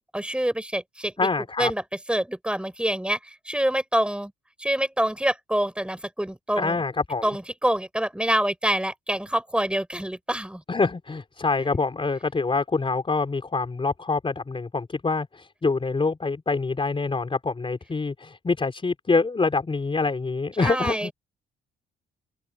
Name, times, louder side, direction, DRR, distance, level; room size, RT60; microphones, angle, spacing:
voice 1, 0.1-1.3 1.6-1.8 2.1-4.3 4.6-6.8 7.2-10.6 20.6-21.1, right 1 dB, 5° right, 6.6 m, -26 dB
voice 2, 1.2-1.7 6.6-7.2 10.7-21.1, left 4 dB, 25° left, 4.5 m, -25 dB
open air
cardioid pair, 90°, 20 cm